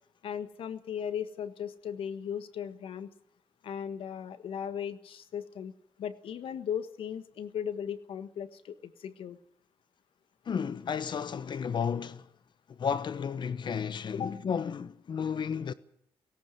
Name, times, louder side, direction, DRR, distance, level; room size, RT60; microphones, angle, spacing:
voice 1, 0.2-3.1 3.6-5.7 6.0-9.4 14.1-14.3, left 8 dB, 80° left, 1.5 m, -37 dB
voice 2, 10.5-12.2 12.8-15.7, left 7 dB, 55° left, 1.0 m, -32 dB
17.5 x 17.5 x 9.2 m
cardioid pair, 80°, 9 cm